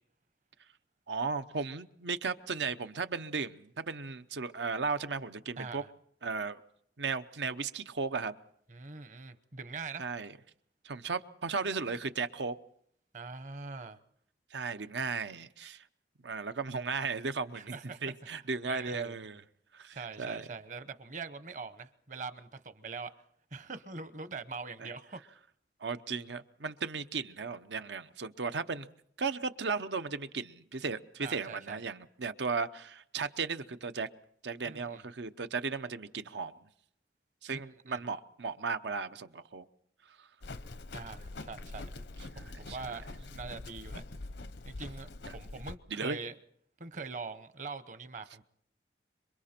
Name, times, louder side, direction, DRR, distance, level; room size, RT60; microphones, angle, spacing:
voice 1, 1.1-5.8 6.2-6.6 7.0-8.3 10.0-10.3 10.8-12.6 14.5-15.8 16.2-17.8 18.0-19.4 19.7-20.5 24.8-24.9 25.8-28.9 29.2-34.1 34.4-36.5 37.4-39.6 40.2-40.3 42.3-42.9 45.3-45.4 45.9-46.2, right 4 dB, 90° right, 11 dB, 0.8 m, -36 dB
voice 2, 5.6-5.9 8.7-10.1 13.1-14.0 17.5-18.1 18.7-19.2 19.9-23.1 23.5-25.2 31.2-31.8 34.7-35.0 37.5-38.0 40.9-41.9 42.4-44.0 44.6-46.3 46.8-48.4, right 4 dB, 45° right, 12 dB, 0.9 m, -43 dB
Livestock farm animals working animals, 40.4-45.8, left 2 dB, 80° left, 0.8 m, -44 dB
26.5 x 23.5 x 4.4 m, 0.68 s
head